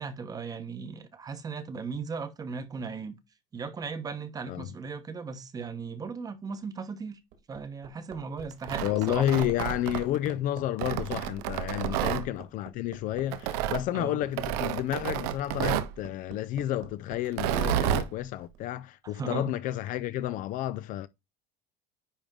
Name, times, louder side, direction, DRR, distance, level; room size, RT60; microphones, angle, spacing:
voice 1, 0.0-3.2 3.5-7.2 7.5-9.3 11.9-12.3 13.9-14.2 19.1-19.5, right 5 dB, 20° right, 0.9 m, -37 dB
Hammer, 7.1-17.2 18.5-18.6, right 7 dB, 55° right, 2.1 m, -46 dB
Tearing, 8.5-10.3 10.8-12.2 13.3-13.8 14.4-15.9 17.3-18.1, right 11 dB, 85° right, 0.8 m, -30 dB
voice 2, 8.8-21.1, left 13 dB, 45° left, 0.4 m, -31 dB
10.0 x 3.5 x 3.7 m
cardioid pair, 160°, 19 cm